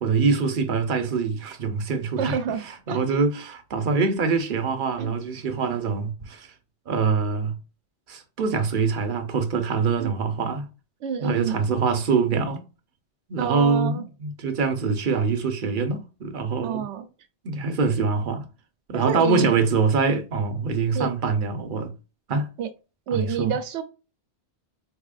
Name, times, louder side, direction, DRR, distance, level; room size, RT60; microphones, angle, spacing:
voice 1, 0.0-6.5 6.9-7.6 8.1-10.7 11.2-12.6 13.3-16.9 17.4-18.5 18.9-21.9 22.3-22.5 23.1-23.6, right 4 dB, 55° right, 0.8 m, -24 dB
voice 2, 2.2-3.2 5.0-5.1 10.0-10.1 11.0-11.6 13.4-14.0 16.6-17.1 18.9-19.5 20.9-21.1 22.6-22.7 23.1-23.8, right 7 dB, 90° right, 0.9 m, -28 dB
4.1 x 2.8 x 2.4 m
omnidirectional pair, 1.1 m